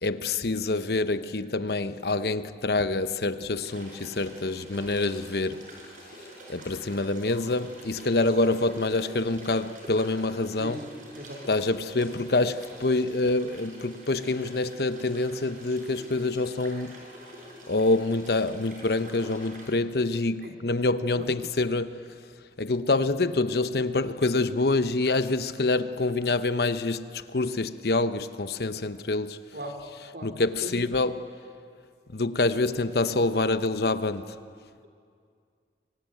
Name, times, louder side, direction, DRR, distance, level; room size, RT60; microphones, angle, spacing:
voice 1, 0.0-5.7 6.5-10.8 11.5-17.0 17.7-22.0 22.6-29.4 30.2-31.2 32.1-34.4, left 2 dB, 65° left, 0.9 m, -26 dB
sound 1, 3.6-19.7, right 1 dB, 45° right, 6.3 m, -47 dB
voice 2, 11.1-11.5 20.4-20.5 21.1-21.3 29.5-29.8 30.1-30.3 30.6-30.8, right 1 dB, 65° right, 4.1 m, -38 dB
25.0 x 23.5 x 9.2 m
head